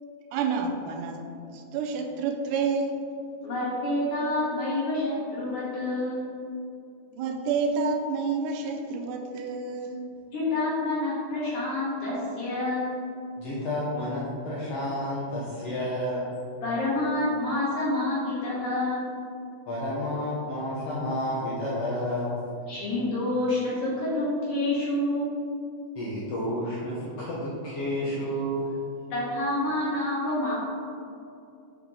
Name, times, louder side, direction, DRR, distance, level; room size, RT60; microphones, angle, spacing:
voice 1, 0.3-1.2 1.5-3.0 7.1-10.2, right 4 dB, 85° right, 4 dB, 2.1 m, -29 dB
voice 2, 3.4-6.3 10.3-12.9 16.6-19.0 22.7-25.3 29.1-30.5, left 2 dB, 50° left, -8 dB, 2.2 m, -28 dB
voice 3, 13.4-16.3 19.7-22.4 25.9-28.7, left 1 dB, 70° left, -7 dB, 1.6 m, -30 dB
5.5 x 4.7 x 3.7 m, 2.5 s
omnidirectional pair, 3.7 m